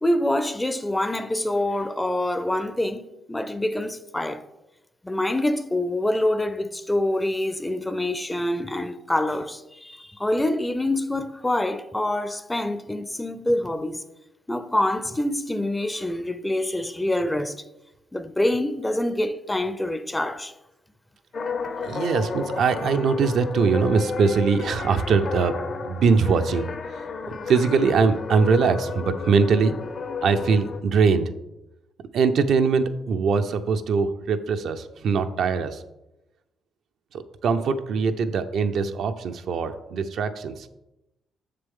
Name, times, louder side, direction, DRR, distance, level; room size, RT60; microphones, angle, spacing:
voice 1, 0.0-4.4 5.0-14.0 14.5-17.6 18.1-20.5, left 1 dB, 10° left, 0.5 m, -26 dB
sound 1, 21.3-30.8, left 4 dB, 50° left, 0.7 m, -32 dB
voice 2, 21.8-26.7 27.3-29.8 30.2-31.3 32.1-35.8 37.1-40.7, right 5 dB, 70° right, 0.6 m, -22 dB
6.8 x 6.7 x 3.6 m
cardioid pair, 90°, 0 cm